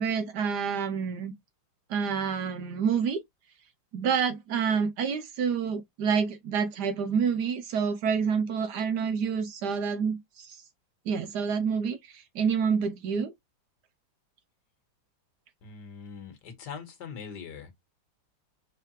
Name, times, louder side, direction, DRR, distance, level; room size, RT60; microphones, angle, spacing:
voice 1, 0.0-1.3 1.9-3.2 3.9-10.6 11.1-13.3, right 6 dB, 70° right, 1.1 m, -28 dB
voice 2, 15.6-17.7, left 6 dB, 65° left, 1.7 m, -42 dB
4.6 x 3.3 x 2.9 m
omnidirectional pair, 2.1 m